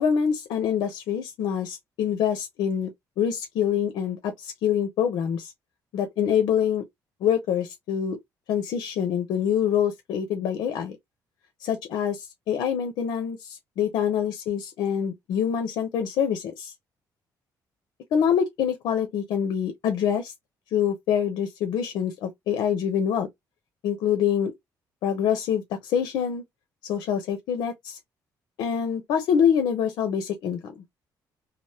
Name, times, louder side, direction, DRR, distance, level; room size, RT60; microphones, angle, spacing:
voice 1, 0.0-2.9 3.2-5.5 5.9-6.8 7.2-8.2 8.5-11.0 11.6-16.7 18.1-20.3 20.7-23.3 23.8-24.5 25.0-26.4 26.9-28.0 28.6-30.8, left 8 dB, 80° left, 0.7 m, -25 dB
3.3 x 2.0 x 2.8 m
cardioid pair, 155°, 7 cm